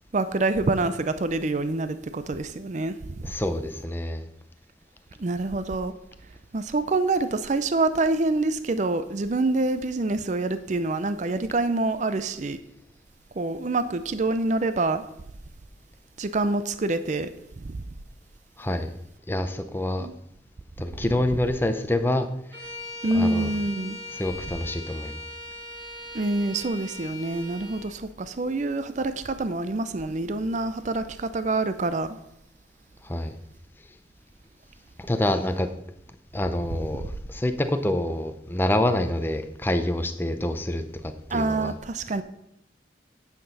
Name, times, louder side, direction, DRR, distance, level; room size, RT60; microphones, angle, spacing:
voice 1, 0.1-3.1 5.2-5.9 6.5-12.6 13.4-15.0 16.2-17.3 17.5-17.8 20.0-20.1 23.0-24.0 26.1-32.1 41.3-42.2, right 2 dB, 45° right, 0.5 m, -26 dB
voice 2, 3.2-4.2 18.6-18.9 19.3-20.1 20.8-22.3 23.1-23.5 24.1-25.2 33.0-33.4 35.0-35.7 36.3-41.7, left 1 dB, 10° left, 0.6 m, -27 dB
Bowed string instrument, 22.5-27.9, left 2 dB, 85° right, 2.7 m, -39 dB
9.3 x 5.9 x 5.4 m
head